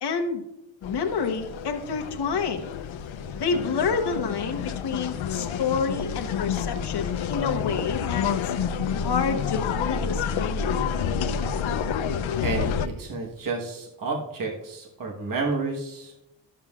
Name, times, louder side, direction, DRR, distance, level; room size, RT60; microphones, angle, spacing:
voice 1, 0.0-0.4 0.8-2.6 3.3-8.5 9.0-10.7, left 5 dB, 60° left, 3 dB, 1.0 m, -28 dB
sound 1, 0.8-12.9, left 7 dB, 85° left, 0.6 m, -29 dB
voice 2, 12.4-16.1, right 3 dB, 45° right, 0 dB, 1.3 m, -30 dB
12.5 x 7.3 x 2.4 m, 0.93 s
wide cardioid pair, 170°, 45 cm